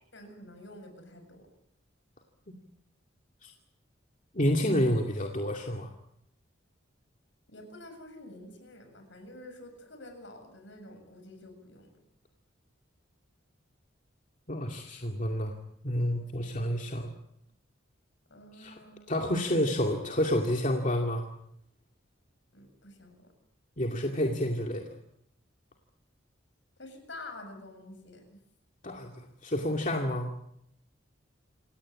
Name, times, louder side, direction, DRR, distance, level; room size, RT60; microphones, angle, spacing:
voice 1, 0.0-1.5 7.5-12.0 18.3-19.2 22.5-23.3 26.8-28.2, left 1 dB, 65° left, 7 dB, 7.4 m, -48 dB
voice 2, 4.3-5.9 14.5-15.5 15.8-17.1 18.6-18.7 19.1-21.3 23.8-25.0 28.8-30.3, equal, 40° left, 2 dB, 2.4 m, -29 dB
28.0 x 18.0 x 8.6 m, 0.76 s
head